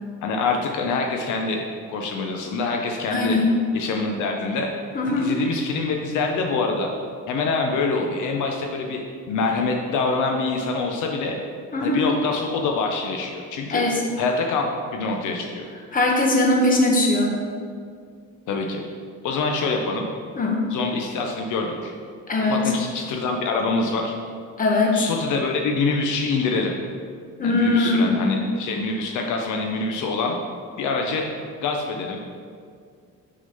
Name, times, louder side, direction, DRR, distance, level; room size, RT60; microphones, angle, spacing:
voice 1, 0.2-1.6 1.9-3.4 3.7-4.7 5.1-6.9 7.3-9.0 9.3-11.4 11.8-13.8 14.2-14.6 14.9-15.7 18.5-18.8 19.2-20.0 20.7-21.9 22.4-24.1 24.9-26.7 27.4-30.3 30.8-31.3 31.6-32.2, left 4 dB, 65° left, 2 dB, 0.7 m, -25 dB
voice 2, 3.1-3.7 4.9-5.3 11.7-12.0 13.7-14.0 15.9-17.4 20.4-20.7 22.3-22.6 24.6-25.0 27.4-28.5, left 2 dB, 25° left, -1 dB, 1.1 m, -20 dB
6.1 x 4.0 x 5.4 m, 2.2 s
cardioid pair, 125°, 32 cm